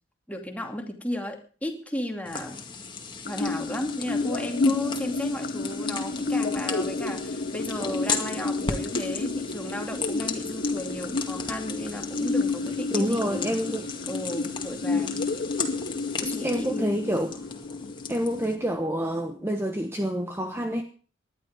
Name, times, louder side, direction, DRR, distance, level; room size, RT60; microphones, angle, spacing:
voice 1, 0.3-2.6 3.2-13.6 14.1-15.3 16.2-17.0, left 1 dB, 10° left, 3 dB, 2.5 m, -34 dB
sound 1, 2.3-18.6, left 5 dB, 25° left, 2.1 m, -36 dB
sound 2, 3.3-19.2, left 3 dB, 50° left, 1.0 m, -30 dB
voice 2, 12.9-13.9 14.9-15.2 16.4-17.3 18.1-20.8, equal, 15° right, 5 dB, 1.1 m, -28 dB
19.0 x 11.5 x 5.1 m, 0.40 s
head